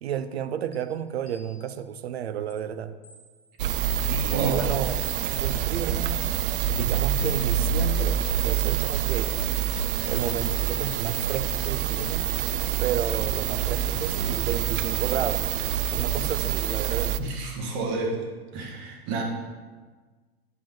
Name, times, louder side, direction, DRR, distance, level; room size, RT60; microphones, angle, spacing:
voice 1, 0.0-2.9 4.1-5.0 5.3-6.3 6.7-9.4 10.1-12.3 12.8-15.5 15.9-17.1, right 9 dB, 85° right, 12 dB, 0.7 m, -31 dB
sound 1, 0.7-0.8 1.3-1.9 2.5-2.6 3.0-3.6 4.2-4.3 4.8-5.0, left 1 dB, 20° left, 1.5 m, -55 dB
sound 2, 3.6-17.2, right 9 dB, 60° right, 0.4 m, -26 dB
voice 2, 4.3-4.8 17.2-18.3 18.5-19.2, right 3 dB, 35° right, -1 dB, 1.8 m, -30 dB
sound 3, 6.2-13.0, right 6 dB, 40° left, 1.2 m, -41 dB
10.5 x 5.2 x 3.8 m, 1.4 s
hypercardioid pair, 150°, 31 cm